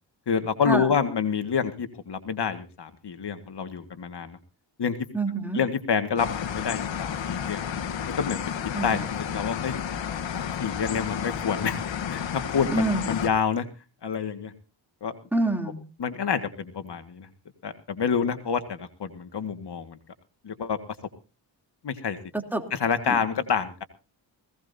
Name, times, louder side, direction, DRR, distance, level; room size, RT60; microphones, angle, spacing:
voice 1, 0.3-4.4 4.8-5.0 5.5-7.7 8.2-8.6 8.8-9.8 10.3-13.7 14.0-14.5 15.0-15.1 16.0-17.3 17.6-20.0 20.4-20.8 21.8-22.2 22.7-23.8, left 6 dB, 60° left, 8 dB, 1.8 m, -28 dB
voice 2, 5.1-5.6 8.7-9.0 12.7-13.2 15.3-15.8 22.3-22.7 23.1-23.2, right 2 dB, 5° right, 4 dB, 3.1 m, -27 dB
sound 1, 6.2-13.3, left 8 dB, 80° left, 1.6 m, -31 dB
19.0 x 17.5 x 2.7 m, 0.33 s
cardioid pair, 85°, 45 cm